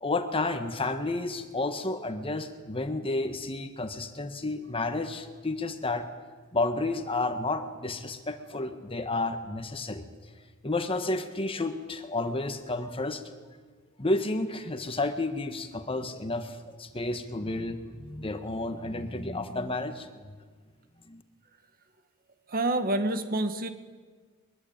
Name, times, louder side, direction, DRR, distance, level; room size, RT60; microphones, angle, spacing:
voice 1, 0.0-6.0 6.5-10.0 10.6-13.2 14.0-20.1 21.1-21.2, left 2 dB, 25° left, 8 dB, 1.5 m, -31 dB
voice 2, 22.5-23.7, right 2 dB, 45° right, 9 dB, 1.7 m, -27 dB
22.5 x 21.5 x 8.9 m, 1.5 s
head